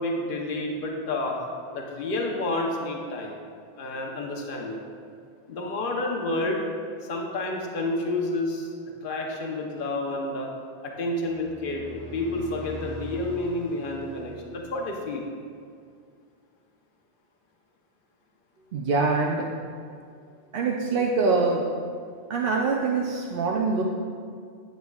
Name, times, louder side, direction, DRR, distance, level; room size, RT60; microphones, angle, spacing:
voice 1, 0.0-1.4 1.7-3.3 3.8-4.8 5.5-6.6 7.1-8.7 9.0-10.5 10.8-15.2, left 2 dB, 55° left, 0 dB, 1.0 m, -29 dB
sound 1, 11.3-15.2, right 2 dB, 25° left, 0.9 m, -42 dB
voice 2, 18.7-19.5 20.5-21.6 22.3-23.8, right 4 dB, 65° right, -1 dB, 0.7 m, -24 dB
8.8 x 8.1 x 2.3 m, 2.2 s
omnidirectional pair, 1.1 m